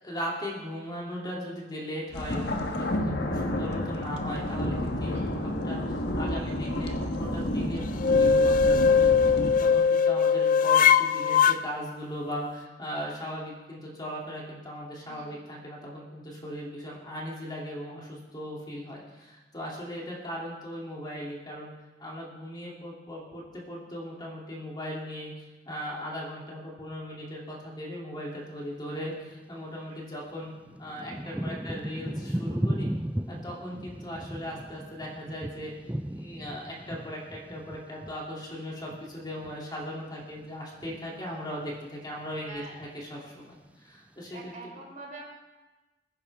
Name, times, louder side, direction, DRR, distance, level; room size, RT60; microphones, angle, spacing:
voice 1, 0.0-7.8 8.1-21.7 22.0-25.3 25.7-30.5 30.8-32.9 33.3-35.7 36.2-44.5, equal, 25° left, -4 dB, 3.0 m, -38 dB
sound 1, 2.1-9.5, left 1 dB, 65° left, 1.4 m, -30 dB
voice 2, 5.1-5.4 15.0-15.4 28.9-29.0 31.2-31.6 41.0-41.4 42.4-42.7 44.3-45.2, right 2 dB, 45° right, -2 dB, 4.4 m, -46 dB
sound 2, 8.0-11.6, left 6 dB, 50° left, 0.4 m, -20 dB
Thunder / Rain, 29.6-29.7 30.4-39.9 40.2-41.1 41.6-42.0 42.2-43.1 43.7-43.8, right 1 dB, 10° right, 0.4 m, -36 dB
22.0 x 10.0 x 3.7 m, 1.2 s
head